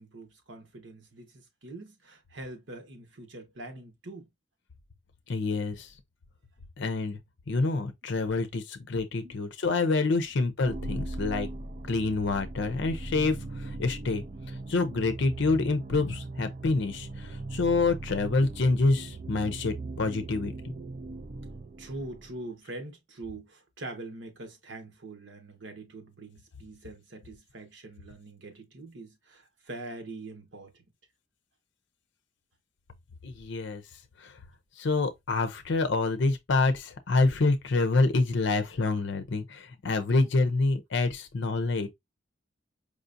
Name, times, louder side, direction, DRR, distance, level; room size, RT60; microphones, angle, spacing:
voice 1, 0.0-4.3 9.2-9.4 21.8-30.8, right 2 dB, 70° right, 1.2 m, -43 dB
voice 2, 5.3-5.9 6.8-7.2 7.5-11.5 11.9-14.2 14.7-20.5 33.2-33.8 34.2-34.4 34.8-41.9, left 3 dB, 65° left, 0.6 m, -27 dB
sound 1, 10.6-22.5, right 2 dB, 40° right, 0.4 m, -39 dB
5.0 x 2.5 x 2.6 m
head